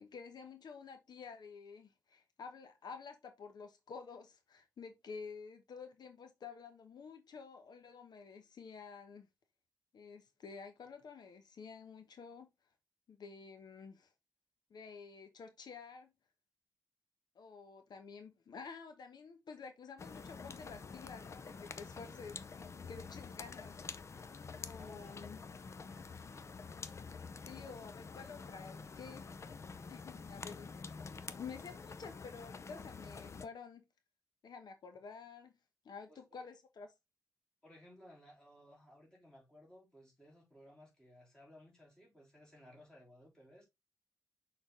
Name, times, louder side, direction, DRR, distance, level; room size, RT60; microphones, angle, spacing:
voice 1, 0.0-9.3 9.9-12.5 13.1-14.1 14.7-16.1 17.3-23.7 24.6-25.4 27.5-29.3 29.9-30.9 31.2-33.9 34.4-35.6 35.8-36.9, left 5 dB, 90° left, 1.1 m, -50 dB
sound 1, 20.0-33.5, left 5 dB, 45° left, 0.5 m, -48 dB
voice 2, 24.8-25.4 36.1-36.4 37.6-43.6, left 1 dB, 10° left, 3.7 m, -60 dB
6.5 x 3.9 x 3.7 m
wide cardioid pair, 140°, 7 cm